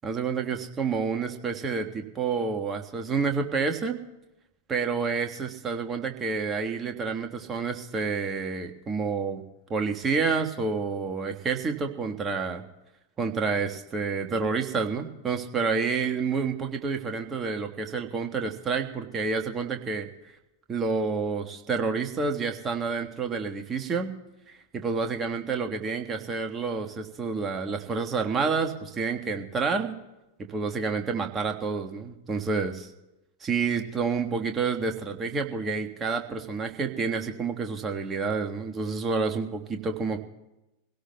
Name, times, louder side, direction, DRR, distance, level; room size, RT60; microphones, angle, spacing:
voice 1, 0.0-4.0 4.7-9.4 9.7-12.6 13.2-20.1 20.7-24.1 24.7-29.9 30.5-32.9 33.4-40.2, right 5 dB, 20° right, 4 dB, 1.4 m, -29 dB
26.5 x 17.0 x 2.2 m, 0.97 s
figure-of-eight pair, 90°, 0 cm